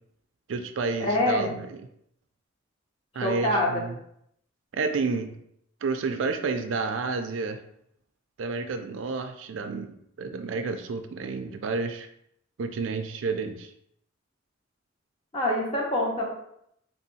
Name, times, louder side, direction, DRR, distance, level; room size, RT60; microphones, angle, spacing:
voice 1, 0.5-1.8 3.1-4.0 4.7-5.4 5.8-7.6 8.4-12.1 12.6-13.7, right 4 dB, 75° right, 8 dB, 0.4 m, -30 dB
voice 2, 1.0-1.5 3.2-3.8 15.3-16.2, left 1 dB, 25° left, -3 dB, 0.9 m, -25 dB
3.4 x 2.6 x 4.0 m, 0.74 s
head